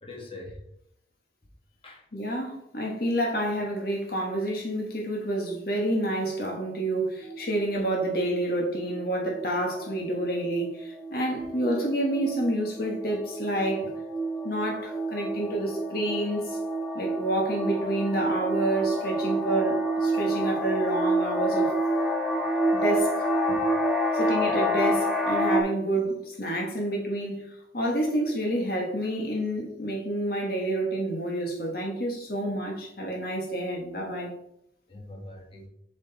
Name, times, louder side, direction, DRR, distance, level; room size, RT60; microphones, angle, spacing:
voice 1, 0.0-0.6 1.8-2.0 7.2-7.3 23.5-23.7 24.3-24.5 34.9-35.7, left 2 dB, 30° left, 1.6 m, -43 dB
voice 2, 2.1-13.9 14.4-16.6 16.9-21.8 22.7-23.3 24.1-34.3, right 1 dB, 50° left, 1.5 m, -29 dB
sound 1, 7.2-7.7 8.3-8.5 8.7-9.0 9.3-25.6, right 1 dB, ahead, 0.9 m, -28 dB
7.5 x 5.0 x 4.1 m
head